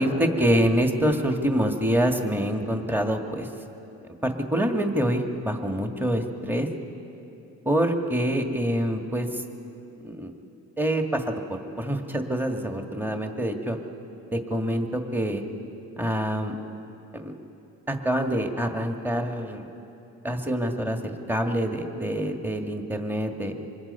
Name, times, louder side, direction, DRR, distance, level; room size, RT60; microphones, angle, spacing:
voice 1, 0.0-3.5 4.2-6.7 7.7-9.3 10.0-10.3 10.8-11.3 11.8-13.8 14.3-15.4 16.0-16.6 17.2-17.3 17.9-19.7 20.2-23.7, equal, 5° right, 4 dB, 1.7 m, -26 dB
25.5 x 21.0 x 5.5 m, 2.8 s
cardioid pair, 90°, 30 cm